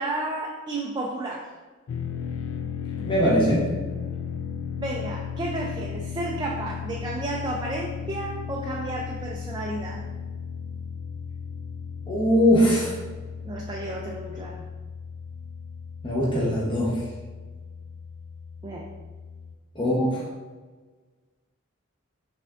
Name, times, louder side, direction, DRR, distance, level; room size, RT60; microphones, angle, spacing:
voice 1, 0.0-1.5 4.8-10.0 13.4-14.7 18.6-18.9, right 2 dB, 20° right, -1 dB, 0.3 m, -32 dB
sound 1, 1.9-19.5, left 7 dB, 70° left, 0.3 m, -35 dB
voice 2, 3.0-3.7 12.1-13.0 16.0-17.0 19.7-20.3, equal, 25° left, -7 dB, 0.9 m, -21 dB
5.7 x 3.4 x 2.5 m, 1.4 s
head